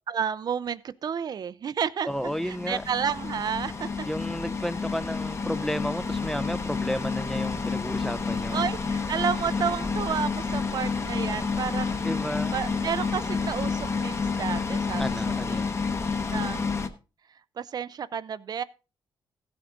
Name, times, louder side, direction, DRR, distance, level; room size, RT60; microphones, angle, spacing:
voice 1, 0.1-2.1 2.4-4.1 8.5-12.0 12.5-15.0 15.5-15.6 16.3-16.7 17.6-18.6, right 7 dB, 50° right, 0.5 m, -31 dB
voice 2, 2.0-2.8 4.1-8.6 12.0-12.5 15.0-15.8, equal, 5° left, 0.4 m, -32 dB
sound 1, 2.1-16.9, left 4 dB, 30° left, 0.9 m, -29 dB
15.0 x 7.9 x 3.8 m
cardioid pair, 125°, 9 cm